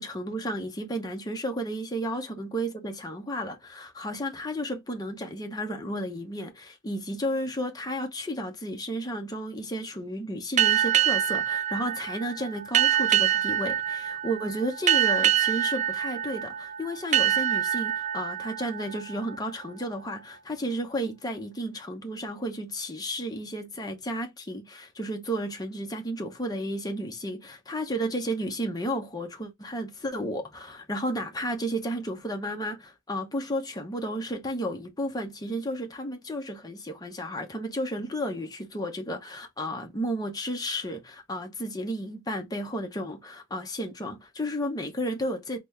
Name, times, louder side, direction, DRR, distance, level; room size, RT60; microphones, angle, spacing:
voice 1, 0.0-45.6, equal, 20° left, 0.8 m, -33 dB
sound 1, 10.6-19.9, right 11 dB, 40° right, 0.4 m, -26 dB
4.0 x 2.2 x 3.3 m
head